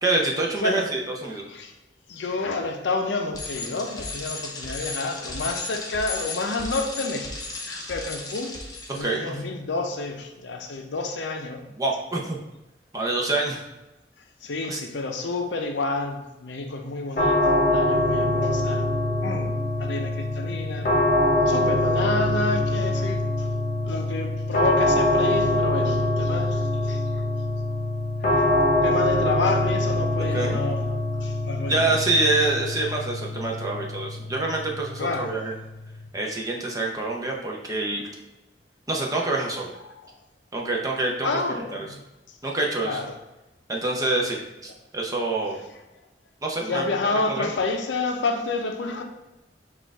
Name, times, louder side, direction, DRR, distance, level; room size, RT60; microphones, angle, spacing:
voice 1, 0.0-1.4 9.0-9.4 11.8-12.4 12.9-13.6 14.7-14.8 30.2-30.6 31.7-35.5 36.1-38.0 38.9-39.7 40.5-41.9 42.4-43.0 43.7-44.4 44.6-45.6 46.4-47.0 47.3-47.5, right 2 dB, 20° right, -1 dB, 0.6 m, -26 dB
voice 2, 2.1-7.3 7.7-8.5 8.9-11.6 14.4-18.9 19.2-19.5 19.8-20.9 21.5-23.5 23.8-27.0 28.3-28.4 28.8-31.9 35.0-35.3 39.9-40.1 41.2-42.0 42.8-43.1 46.7-49.0, left 3 dB, 90° left, 5 dB, 0.6 m, -29 dB
Bicycle, 3.3-9.0, left 3 dB, 20° left, 0.6 m, -35 dB
sound 1, 17.2-36.1, left 1 dB, 45° left, 1.0 m, -24 dB
4.3 x 2.5 x 4.6 m, 1.0 s
head